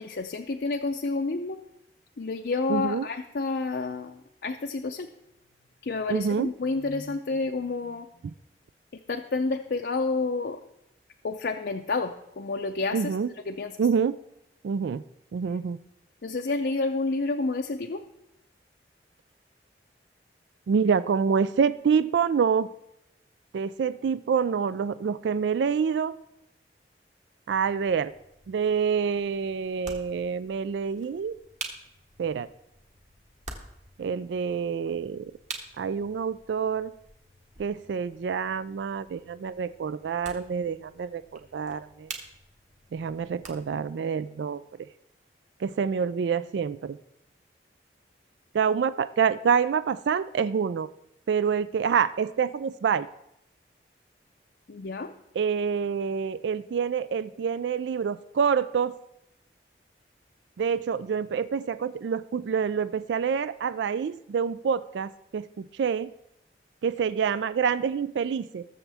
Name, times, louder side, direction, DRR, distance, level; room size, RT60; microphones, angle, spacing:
voice 1, 0.0-1.6 2.2-5.1 5.8-8.1 8.9-10.6 11.2-13.1 13.5-13.7 16.2-18.0 54.7-55.1, left 3 dB, 65° left, 4 dB, 0.5 m, -29 dB
voice 2, 2.7-3.1 6.1-6.5 12.9-13.3 13.8-14.2 14.6-15.0 15.3-15.8 20.7-22.7 23.5-26.1 27.5-28.1 28.5-31.4 32.2-32.5 34.0-35.3 35.8-36.9 37.6-42.1 42.9-44.6 45.6-47.0 48.5-50.9 51.3-53.1 55.4-58.9 60.6-66.1 66.8-68.6, right 6 dB, 80° right, 16 dB, 0.3 m, -27 dB
sound 1, 27.6-43.9, right 4 dB, 40° right, 1.6 m, -47 dB
20.5 x 7.1 x 3.5 m, 0.82 s
head